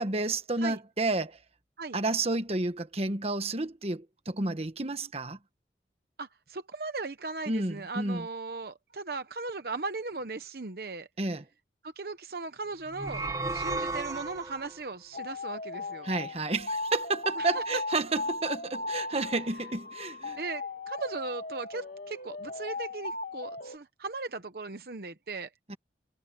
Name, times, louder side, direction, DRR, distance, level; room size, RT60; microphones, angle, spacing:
voice 1, 0.0-1.4 1.9-5.4 7.5-8.3 11.2-11.4 16.0-20.4 25.7-25.8, right 2 dB, 35° right, 1.3 m, -31 dB
voice 2, 6.2-11.1 11.8-13.2 13.5-16.1 17.4-17.6 20.4-25.5, right 3 dB, 60° right, 0.9 m, -38 dB
sound 1, 12.9-14.8, right 3 dB, 20° right, 1.2 m, -34 dB
sound 2, 15.1-23.8, left 2 dB, 55° left, 3.3 m, -37 dB
head